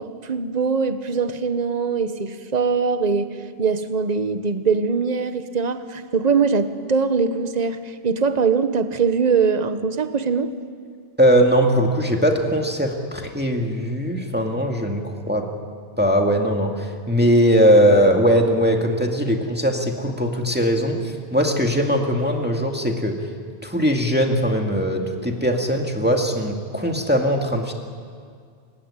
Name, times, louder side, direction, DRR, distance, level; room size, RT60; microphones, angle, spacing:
voice 1, 0.0-10.5, right 5 dB, 40° right, 10 dB, 1.2 m, -22 dB
voice 2, 11.2-15.5 16.0-23.3 23.6-27.7, equal, 10° right, 2 dB, 2.1 m, -20 dB
29.0 x 17.0 x 9.8 m, 2.1 s
omnidirectional pair, 1.2 m